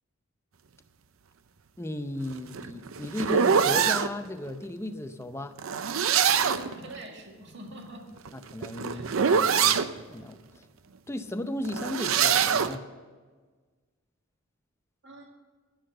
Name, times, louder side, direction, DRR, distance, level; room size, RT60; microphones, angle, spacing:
voice 1, 1.8-5.6 8.3-10.4 11.1-12.8, left 1 dB, 15° left, 9 dB, 0.6 m, -35 dB
sound 1, 2.3-4.1 5.6-6.8 8.2-9.9 11.6-12.8, right 7 dB, 80° right, 0.6 m, -24 dB
voice 2, 6.5-8.1 8.9-9.2 15.0-15.3, right 2 dB, 55° right, 2 dB, 2.0 m, -44 dB
10.5 x 9.7 x 6.8 m, 1.4 s
head